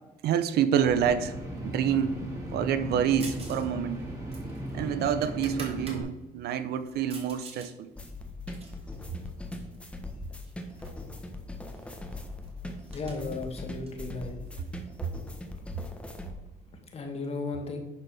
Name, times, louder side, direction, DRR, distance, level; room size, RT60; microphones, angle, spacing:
voice 1, 0.2-1.3 1.6-2.2 2.5-4.0 4.7-7.9 15.0-15.1, right 8 dB, 70° right, 12 dB, 0.7 m, -27 dB
sound 1, 0.8-6.0, equal, 20° right, 2.7 m, -37 dB
sound 2, 3.2-3.7 3.9-6.0 6.5-7.7 8.1-9.8 10.4-11.0 11.3-11.4 11.7-14.8, right 3 dB, 35° right, 2.3 m, -47 dB
sound 3, 8.0-16.3, left 2 dB, 5° left, 1.3 m, -41 dB
voice 2, 12.9-14.3 16.9-17.8, left 3 dB, 35° left, 3 dB, 1.9 m, -35 dB
10.5 x 4.9 x 4.9 m, 1.0 s
cardioid pair, 110°, 17 cm